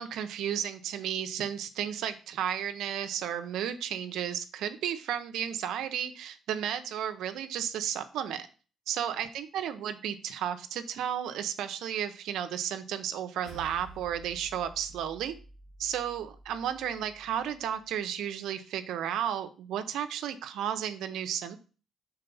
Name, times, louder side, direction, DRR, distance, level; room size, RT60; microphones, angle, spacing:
voice 1, 0.0-8.5 8.9-15.4 15.8-21.6, right 9 dB, 85° right, 9 dB, 0.6 m, -33 dB
sound 1, 13.4-18.0, right 2 dB, 90° left, 2.8 m, -51 dB
5.7 x 4.1 x 5.4 m, 0.36 s
cardioid pair, 90°, 0 cm